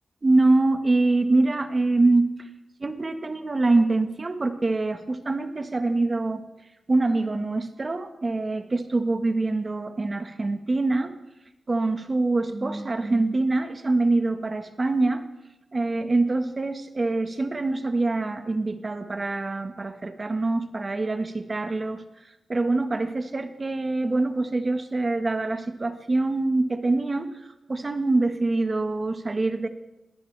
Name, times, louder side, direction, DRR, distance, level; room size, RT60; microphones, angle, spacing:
voice 1, 0.2-2.3 2.8-6.4 6.9-11.1 11.7-15.2 15.7-22.0 22.5-27.3 27.7-29.7, right 2 dB, 40° right, 8 dB, 1.4 m, -24 dB
21.0 x 17.5 x 3.4 m, 0.95 s
cardioid pair, 60°, 0 cm